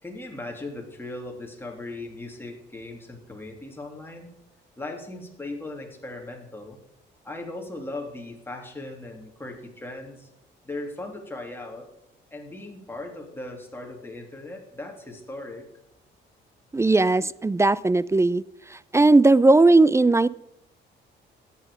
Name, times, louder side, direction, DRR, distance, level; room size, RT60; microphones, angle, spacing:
voice 1, 0.0-4.3 4.8-6.8 7.2-10.3 10.6-11.9 12.3-15.7, left 2 dB, 10° left, 1 dB, 3.0 m, -38 dB
voice 2, 16.7-18.4 18.7-20.3, right 2 dB, 15° right, 20 dB, 0.4 m, -18 dB
13.5 x 10.0 x 5.1 m, 0.81 s
cardioid pair, 90°, 20 cm